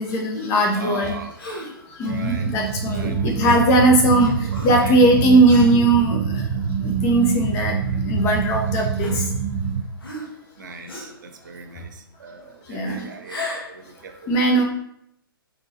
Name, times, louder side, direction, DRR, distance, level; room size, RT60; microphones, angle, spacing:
voice 1, 0.0-1.1 1.9-6.5 6.8-9.2 12.7-13.0 14.3-14.6, right 2 dB, 25° left, 0 dB, 0.9 m, -19 dB
voice 2, 0.7-1.3 2.0-2.6 2.9-3.8 4.5-4.9 10.6-14.3, right 4 dB, 55° right, 4 dB, 0.7 m, -39 dB
Gasp, 1.4-1.8 3.4-3.8 4.5-4.9 5.5-5.7 6.4-6.6 7.7-7.8 9.0-9.6 10.0-10.5 10.9-11.2 13.1-13.8, left 1 dB, 70° left, 1.5 m, -34 dB
sound 1, 2.0-9.8, right 6 dB, 30° right, 0.4 m, -25 dB
4.3 x 3.9 x 2.7 m, 0.73 s
figure-of-eight pair, 120°, 12 cm